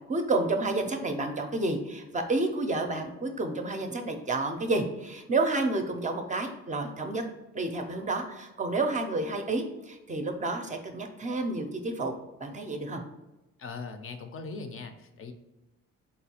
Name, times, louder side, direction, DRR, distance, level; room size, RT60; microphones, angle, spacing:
voice 1, 0.1-7.2 7.5-12.1 12.4-13.0, right 2 dB, 25° right, 5 dB, 0.4 m, -30 dB
voice 2, 13.6-15.3, left 4 dB, 45° left, 7 dB, 0.4 m, -40 dB
4.0 x 2.2 x 2.8 m, 1.0 s
cardioid pair, 90°, 30 cm